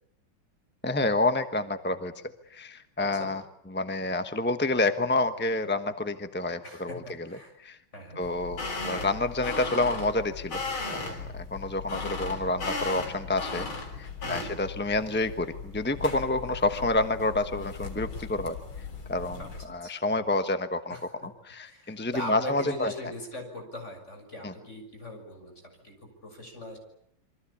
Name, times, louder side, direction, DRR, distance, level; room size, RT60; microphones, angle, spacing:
voice 1, 0.8-2.1 2.5-3.4 3.7-7.8 8.2-10.6 10.9-13.7 14.0-18.6 19.1-19.4 19.6-21.0 21.2-22.9 24.4-24.5, left 2 dB, 10° left, 9 dB, 0.6 m, -28 dB
voice 2, 6.6-7.5 7.9-8.2 14.2-14.7 19.4-20.2 20.9-21.0 21.7-25.9 26.2-26.8, left 1 dB, 30° left, 4 dB, 7.2 m, -41 dB
sound 1, 8.2-19.7, left 4 dB, 65° left, 4.2 m, -37 dB
28.0 x 24.0 x 8.6 m, 0.71 s
omnidirectional pair, 2.4 m